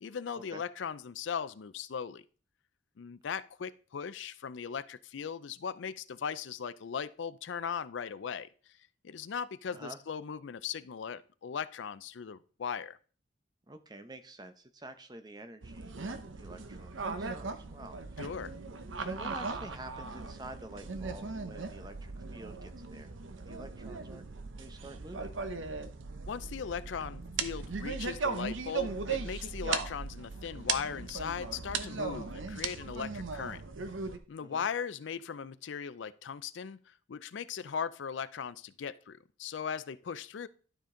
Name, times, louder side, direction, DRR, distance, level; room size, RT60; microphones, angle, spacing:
voice 1, 0.0-2.2 3.0-8.5 9.0-13.0 18.2-18.5 26.3-33.6 34.3-40.5, left 7 dB, 75° left, 0.4 m, -38 dB
voice 2, 13.7-18.2 19.0-24.2 24.6-25.4 34.4-34.7, right 1 dB, 20° right, 0.7 m, -48 dB
sound 1, 15.6-34.2, right 4 dB, 85° right, 0.8 m, -38 dB
12.0 x 5.1 x 3.8 m
head